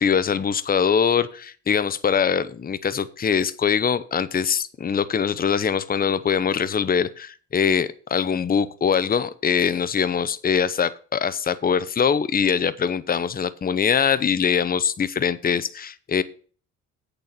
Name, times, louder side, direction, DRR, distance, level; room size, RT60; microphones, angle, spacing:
voice 1, 0.0-16.2, left 7 dB, 30° left, 15 dB, 0.8 m, -22 dB
8.4 x 6.9 x 5.7 m, 0.40 s
cardioid pair, 90°, 30 cm